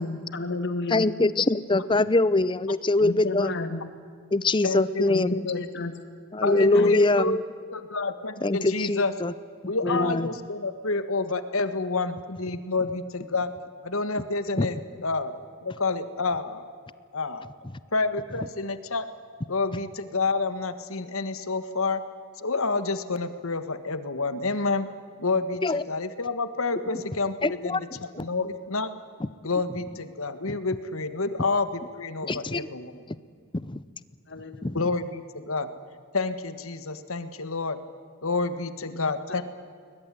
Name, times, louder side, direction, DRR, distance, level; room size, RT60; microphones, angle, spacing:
voice 1, 0.0-1.1 3.0-3.8 5.1-5.9 6.7-6.9 9.9-10.2 34.3-34.7 38.9-39.0 39.3-39.4, left 2 dB, 50° left, 9 dB, 1.9 m, -32 dB
voice 2, 0.9-3.6 4.3-5.4 6.3-7.4 8.4-9.3 9.8-10.3 14.6-14.7 25.6-25.8 27.4-27.8 28.2-28.3 30.5-30.6 32.2-32.7 33.6-33.8 34.6-34.8, left 2 dB, 20° left, 17 dB, 0.6 m, -23 dB
voice 3, 4.6-5.6 6.4-7.4 7.7-9.1 9.7-13.5 13.8-16.6 17.1-17.5 17.9-19.1 19.5-22.0 22.4-24.9 25.2-28.9 29.4-33.0 34.7-35.7 36.1-37.8 38.2-39.4, left 3 dB, 70° left, 12 dB, 1.6 m, -29 dB
21.0 x 21.0 x 10.0 m, 2.2 s
head